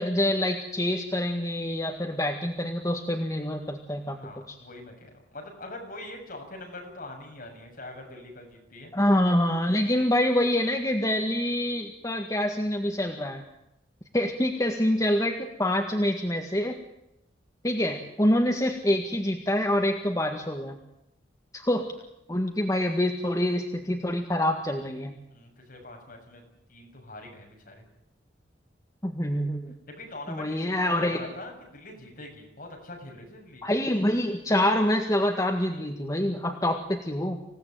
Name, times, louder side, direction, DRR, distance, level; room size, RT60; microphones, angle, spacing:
voice 1, 0.0-4.2 4.5-4.6 8.9-13.4 14.1-16.8 17.6-20.8 21.5-21.9 22.3-25.1 29.0-29.7 30.3-31.2 33.6-37.4, left 1 dB, 20° left, 3 dB, 1.8 m, -26 dB
voice 2, 4.1-8.9 25.3-26.4 26.7-27.8 29.9-33.7, left 2 dB, 50° left, 1 dB, 7.1 m, -43 dB
26.0 x 17.5 x 9.3 m, 0.84 s
head